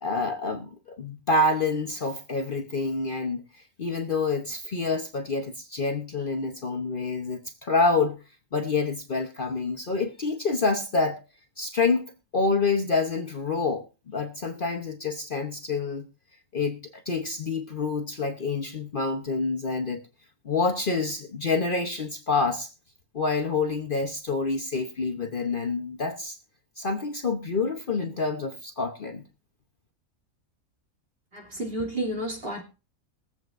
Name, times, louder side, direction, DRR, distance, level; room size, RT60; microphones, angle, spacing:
voice 1, 0.0-8.2 8.5-11.2 11.6-16.1 16.5-20.0 20.4-22.7 23.1-26.4 26.8-29.2, left 3 dB, 45° left, 1.0 m, -27 dB
voice 2, 31.3-32.6, right 1 dB, 45° right, 2.9 m, -31 dB
22.0 x 7.9 x 2.5 m
omnidirectional pair, 1.4 m